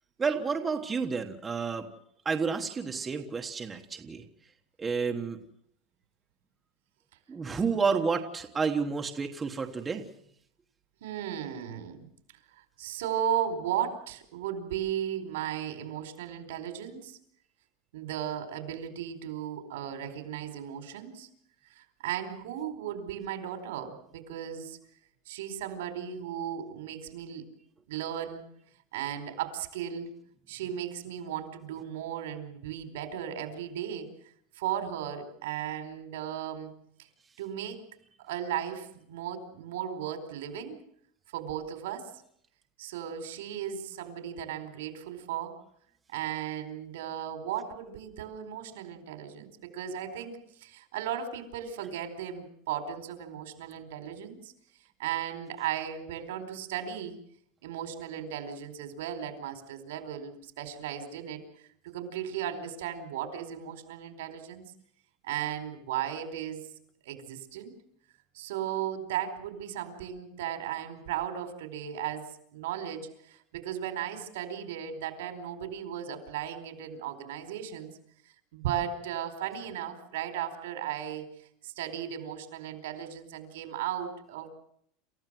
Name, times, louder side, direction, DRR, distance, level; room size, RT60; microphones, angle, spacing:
voice 1, 0.2-1.9 2.2-4.2 4.8-5.4 7.3-10.0, right 5 dB, 10° right, 4 dB, 1.3 m, -30 dB
voice 2, 11.0-12.0 12.8-17.2 17.9-21.3 21.7-24.8 25.3-27.5 27.9-28.4 28.9-30.1 30.5-34.1 34.5-36.7 37.4-37.8 38.2-40.8 41.3-42.1 42.8-45.5 46.1-54.5 55.0-57.2 57.6-61.4 61.8-64.6 65.2-66.7 67.0-67.7 68.3-77.9 78.5-81.3 81.6-84.5, right 10 dB, 85° right, 8 dB, 4.6 m, -36 dB
28.0 x 15.0 x 7.7 m, 0.69 s
supercardioid pair, 175°, 0 cm